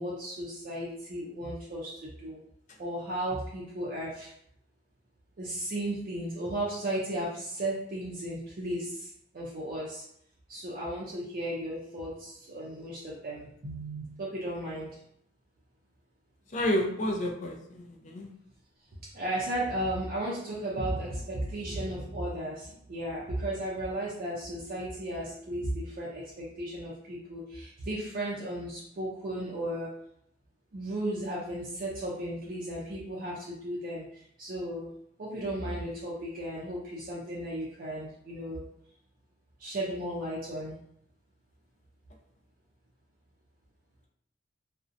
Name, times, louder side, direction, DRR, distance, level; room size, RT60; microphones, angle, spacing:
voice 1, 0.0-2.4 2.8-4.3 5.4-10.0 10.5-14.9 19.0-29.9 30.7-34.9 35.2-38.6 39.6-40.7, right 1 dB, 50° right, -5 dB, 0.4 m, -35 dB
voice 2, 16.5-18.3, equal, 40° left, 2 dB, 0.4 m, -30 dB
2.6 x 2.1 x 2.5 m, 0.72 s
head